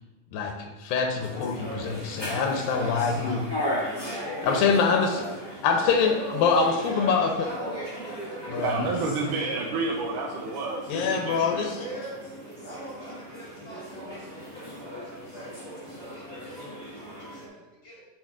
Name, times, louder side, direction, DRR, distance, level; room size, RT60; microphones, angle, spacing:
voice 1, 0.3-3.4 4.4-5.2 5.6-7.5 8.5-8.9 10.9-11.8, left 5 dB, 85° left, 2 dB, 2.4 m, -24 dB
sound 1, 1.2-17.5, equal, 25° left, 0.5 m, -37 dB
voice 2, 2.6-4.2 4.5-5.2 5.6-6.2 6.5-8.6 8.9-9.6 11.2-12.2 12.6-14.5 14.8-18.0, right 1 dB, 40° left, -6 dB, 2.2 m, -43 dB
voice 3, 8.6-11.9, right 3 dB, 75° right, -2 dB, 2.1 m, -30 dB
9.0 x 5.9 x 2.4 m, 1.1 s
omnidirectional pair, 4.0 m